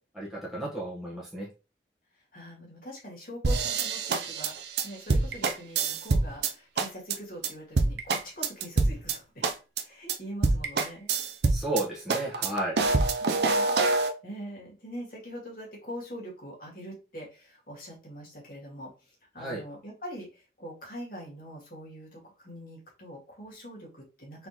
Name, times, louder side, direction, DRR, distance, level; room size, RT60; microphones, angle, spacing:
voice 1, 0.1-1.5 11.5-12.8 19.4-19.6, right 1 dB, ahead, -6 dB, 1.2 m, -33 dB
voice 2, 2.3-9.5 9.8-11.1 13.2-13.8 14.2-24.5, equal, 50° left, -2 dB, 2.0 m, -43 dB
sound 1, 3.4-6.5 6.8-7.2 7.4-7.5 7.8-9.2 9.4-9.8 10.1-10.2 10.4-11.8 12.1-14.1, right 3 dB, 65° right, 0.6 m, -25 dB
4.0 x 3.6 x 3.0 m, 0.32 s
head